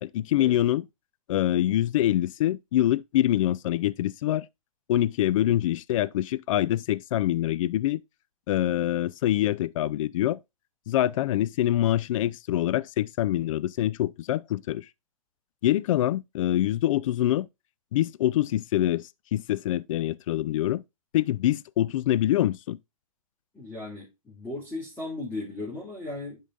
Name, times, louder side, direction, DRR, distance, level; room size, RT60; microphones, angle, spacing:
voice 1, 0.0-0.8 1.3-4.5 4.9-8.0 8.5-10.4 10.9-14.9 15.6-17.5 17.9-20.8 21.1-22.8, left 13 dB, 60° left, 0.4 m, -25 dB
voice 2, 23.5-26.4, left 2 dB, 10° left, 2.6 m, -36 dB
10.0 x 5.4 x 2.5 m
hypercardioid pair, 145°, 19 cm